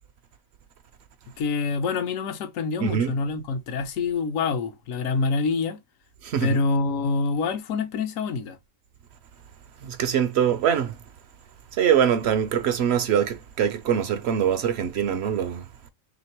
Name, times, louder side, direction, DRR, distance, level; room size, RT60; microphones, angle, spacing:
voice 1, 1.4-5.8 6.4-8.6, left 4 dB, 75° left, 1.1 m, -26 dB
voice 2, 2.8-3.1 6.2-6.6 9.8-11.0 11.8-15.7, right 8 dB, 65° right, 0.7 m, -23 dB
3.2 x 2.9 x 4.4 m
omnidirectional pair, 1.4 m